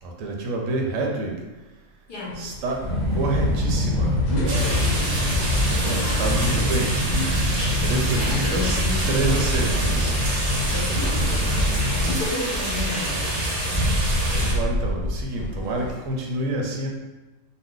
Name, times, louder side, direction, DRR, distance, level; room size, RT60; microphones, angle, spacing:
voice 1, 0.0-1.4 2.4-2.8 3.1-4.2 5.6-7.0 7.8-8.8 9.1-10.1 14.0-16.9, right 2 dB, 90° right, 1 dB, 1.0 m, -28 dB
voice 2, 2.1-2.5 4.3-5.4 5.7-7.5 8.2-10.0 10.7-11.6 11.9-13.8, left 1 dB, 55° left, -5 dB, 0.7 m, -32 dB
sound 1, 2.3-15.9, left 1 dB, 85° left, 1.0 m, -33 dB
sound 2, 2.8-12.1, left 1 dB, 5° left, 0.6 m, -25 dB
sound 3, 4.5-14.5, right 1 dB, 50° right, 0.7 m, -26 dB
2.6 x 2.1 x 3.6 m, 1.1 s
omnidirectional pair, 1.3 m